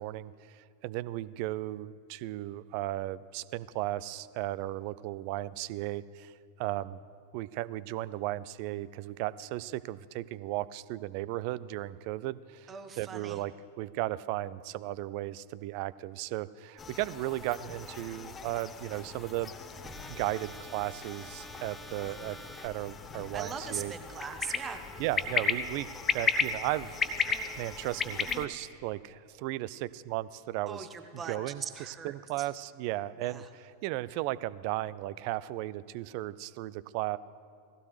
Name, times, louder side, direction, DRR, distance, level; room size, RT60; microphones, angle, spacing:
voice 1, 0.0-6.3 6.6-7.0 7.3-19.5 20.1-22.4 22.6-23.9 25.0-25.9 26.1-30.9 31.1-37.2, right 15 dB, 45° right, 18 dB, 0.4 m, -35 dB
voice 2, 12.7-13.4 23.3-24.8 30.7-32.5 33.2-33.5, right 6 dB, 20° right, 7 dB, 1.1 m, -40 dB
sound 1, 16.8-28.5, left 5 dB, 20° left, 0.8 m, -35 dB
sound 2, 17.5-22.7, right 1 dB, ahead, 1.9 m, -50 dB
18.5 x 15.5 x 3.2 m, 2.3 s
figure-of-eight pair, 90°, 0 cm